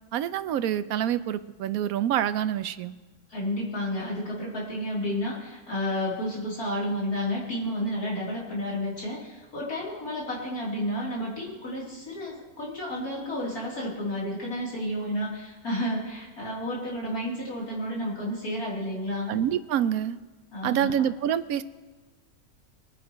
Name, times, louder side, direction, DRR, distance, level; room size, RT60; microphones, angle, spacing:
voice 1, 0.1-2.9 19.3-20.2 20.6-21.6, right 10 dB, 75° right, 13 dB, 1.0 m, -26 dB
voice 2, 3.3-19.3 20.5-20.9, left 1 dB, 80° left, -5 dB, 3.7 m, -31 dB
22.5 x 9.9 x 3.0 m, 1.3 s
omnidirectional pair, 1.6 m